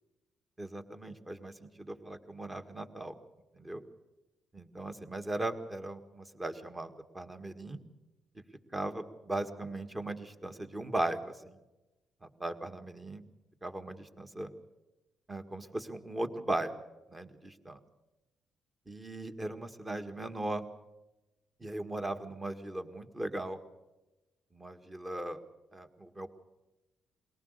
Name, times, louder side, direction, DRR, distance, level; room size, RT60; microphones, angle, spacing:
voice 1, 0.6-3.1 3.6-3.8 4.5-7.8 8.7-11.6 12.4-13.2 13.6-14.5 15.3-16.7 17.1-17.8 18.9-20.6 21.6-23.6 24.5-25.4 25.7-26.3, right 2 dB, 20° right, 7 dB, 1.9 m, -38 dB
22.0 x 18.5 x 6.7 m, 1.0 s
cardioid pair, 90°, 0 cm